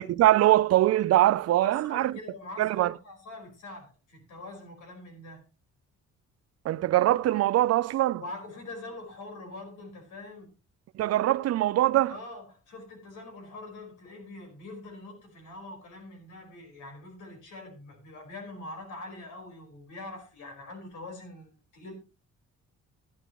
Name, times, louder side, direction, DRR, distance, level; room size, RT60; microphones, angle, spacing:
voice 1, 0.0-2.2 2.6-2.9 6.6-8.2 10.9-12.2, right 14 dB, 55° right, 0.5 m, -23 dB
voice 2, 1.6-5.4 8.2-10.5 12.1-21.9, left 2 dB, 80° left, 4.6 m, -44 dB
12.5 x 11.0 x 3.0 m
cardioid pair, 90°, 30 cm